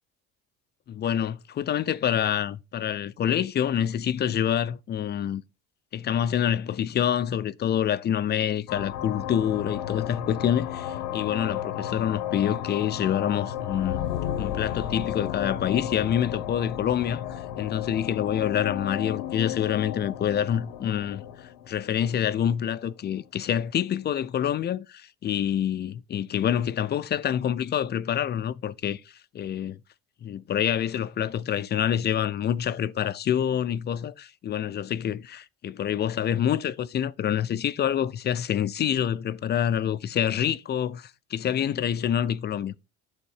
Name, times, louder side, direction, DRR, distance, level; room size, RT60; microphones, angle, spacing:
voice 1, 0.9-5.4 5.9-14.0 14.4-21.2 21.7-29.0 29.3-29.8 30.2-42.7, left 9 dB, 30° left, 0.4 m, -27 dB
sound 1, 8.7-22.8, left 10 dB, 90° left, 0.9 m, -33 dB
8.5 x 3.6 x 4.8 m
cardioid pair, 105°, 33 cm